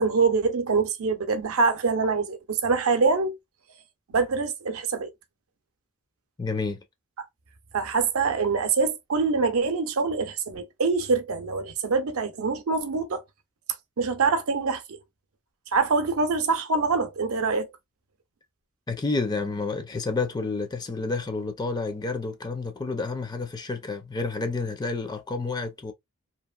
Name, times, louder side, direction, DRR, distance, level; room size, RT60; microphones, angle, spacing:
voice 1, 0.0-3.4 4.1-5.1 7.7-13.2 14.0-15.0 15.7-17.7, right 4 dB, 70° right, 0.6 m, -24 dB
voice 2, 6.4-6.8 18.9-25.9, left 3 dB, 20° left, 0.4 m, -30 dB
2.8 x 2.4 x 2.2 m
head